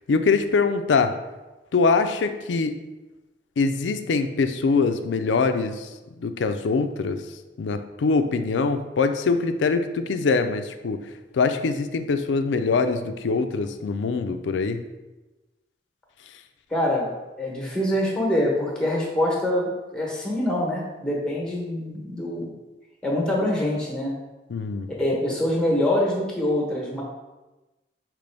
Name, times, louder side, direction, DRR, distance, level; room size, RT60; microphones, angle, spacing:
voice 1, 0.1-1.1 1.7-2.7 3.6-5.9 6.2-7.2 7.6-11.0 11.3-14.8 24.5-24.9, left 4 dB, 85° left, 8 dB, 0.4 m, -23 dB
voice 2, 16.7-17.1 17.4-22.5 23.0-24.1 25.0-27.0, left 1 dB, 5° left, -3 dB, 1.0 m, -25 dB
5.2 x 3.0 x 3.3 m, 1.1 s
head